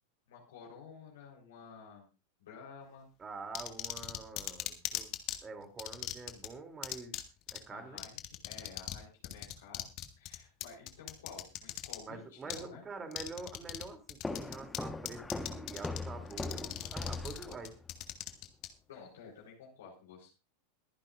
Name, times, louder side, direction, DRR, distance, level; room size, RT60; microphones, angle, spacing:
voice 1, 0.3-2.1 2.4-3.1 7.7-12.8 18.9-20.3, left 5 dB, 75° left, -2 dB, 4.2 m, -52 dB
voice 2, 3.2-5.1 5.4-7.2 7.5-8.0 12.1-17.7, right 4 dB, 20° right, 6 dB, 3.1 m, -46 dB
sound 1, 3.5-5.4 5.8-6.5 6.8-7.2 7.5-7.6 8.0-9.0 9.2-12.0 12.5-12.6 13.1-13.8 14.1-14.8 15.1-16.0 16.3-18.7, left 15 dB, 50° left, 1.8 m, -38 dB
sound 2, 14.2-17.9, left 3 dB, 10° left, 1.4 m, -40 dB
22.5 x 10.5 x 2.6 m, 0.32 s
hypercardioid pair, 100°, 0 cm